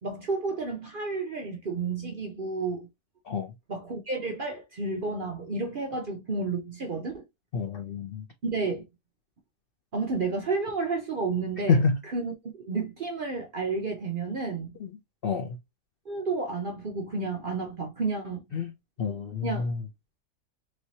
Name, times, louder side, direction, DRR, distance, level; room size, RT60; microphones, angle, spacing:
voice 1, 0.0-2.9 3.7-7.2 8.4-8.8 9.9-14.8 16.1-18.4 19.4-19.7, right 3 dB, 55° right, 0.6 m, -31 dB
voice 2, 7.5-8.3 11.7-12.0 14.8-14.9 15.2-15.6 18.5-18.7 19.0-19.8, left 5 dB, 90° left, 0.5 m, -27 dB
3.3 x 3.1 x 2.8 m
omnidirectional pair, 1.7 m